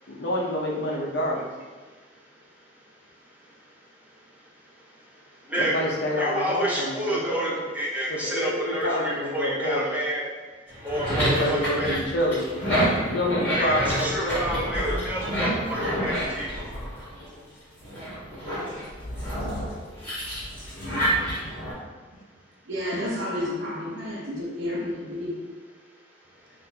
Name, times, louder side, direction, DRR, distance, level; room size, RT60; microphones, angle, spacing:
voice 1, 0.1-1.5 5.6-7.5 8.1-9.8 11.2-14.9, left 1 dB, 60° left, -3 dB, 0.6 m, -28 dB
voice 2, 5.5-5.9 6.2-10.3 10.8-12.0 13.5-16.5, right 1 dB, 5° right, -6 dB, 0.5 m, -29 dB
sound 1, 10.7-17.4 17.8-21.7, equal, 10° left, 1.5 m, -28 dB
voice 3, 22.7-25.4, left 1 dB, 75° right, -4 dB, 0.8 m, -30 dB
4.1 x 2.6 x 2.2 m, 1.4 s
head